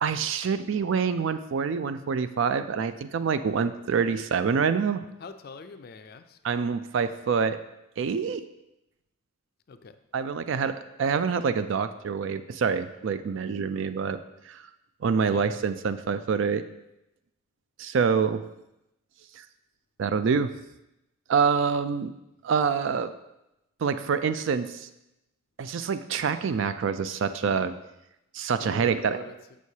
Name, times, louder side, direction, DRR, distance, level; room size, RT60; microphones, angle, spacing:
voice 1, 0.0-5.0 6.4-7.6 8.0-8.4 10.1-14.2 14.5-14.6 15.0-16.6 17.8-18.4 19.4-19.5 20.0-20.5 21.3-22.1 22.4-23.1 23.8-24.9 25.6-27.7 28.3-29.3, right 6 dB, 65° right, 12 dB, 0.3 m, -26 dB
voice 2, 5.2-6.4 9.7-10.0 15.3-15.6 28.6-29.4, left 4 dB, 45° left, 9 dB, 0.4 m, -44 dB
7.1 x 6.3 x 2.8 m, 0.89 s
head